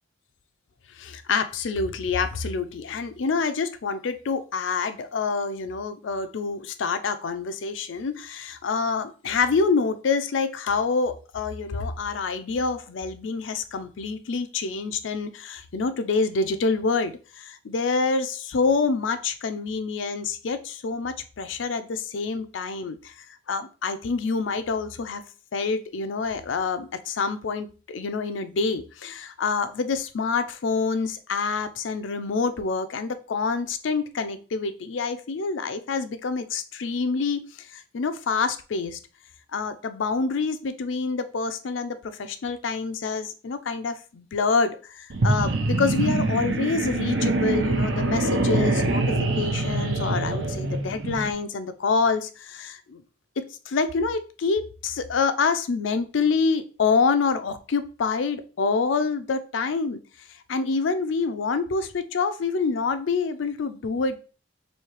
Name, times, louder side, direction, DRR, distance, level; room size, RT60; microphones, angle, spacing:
voice 1, 1.0-23.1 23.5-25.2 25.5-37.4 37.7-39.0 39.5-49.0 49.4-53.0 53.4-60.0 60.5-64.2, left 4 dB, 80° left, 0.5 m, -27 dB
sound 1, 45.1-51.3, right 2 dB, 70° right, 0.7 m, -24 dB
3.1 x 2.8 x 4.5 m
head